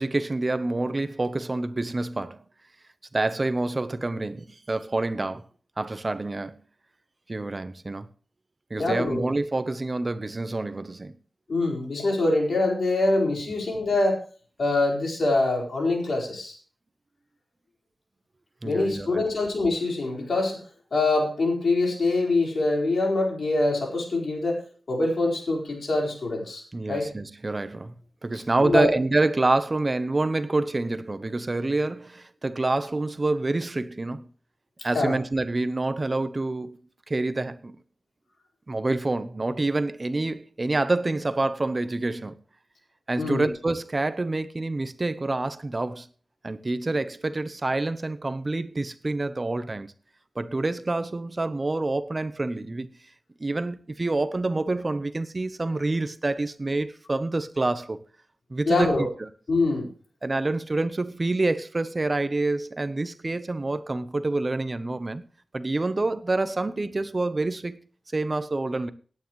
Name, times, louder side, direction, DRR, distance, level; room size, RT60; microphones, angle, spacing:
voice 1, 0.0-2.4 3.1-5.4 5.8-6.6 7.3-8.1 8.7-11.1 18.6-19.2 26.7-27.9 28.2-34.3 34.8-36.8 37.1-37.8 38.7-42.4 43.1-46.1 46.4-49.9 50.4-52.9 53.4-58.0 58.5-58.9 59.2-59.3 60.2-65.2 65.5-67.8 68.1-68.9, right 2 dB, 35° right, 0.9 m, -27 dB
voice 2, 8.8-9.2 11.5-14.2 14.6-16.6 18.6-20.6 20.9-24.6 24.9-26.6 26.9-27.1 28.3-28.9 34.9-35.1 43.2-43.5 58.6-59.1 59.5-59.9, left 2 dB, 75° left, 4.5 m, -24 dB
18.0 x 9.6 x 3.2 m
wide cardioid pair, 85°, 0 cm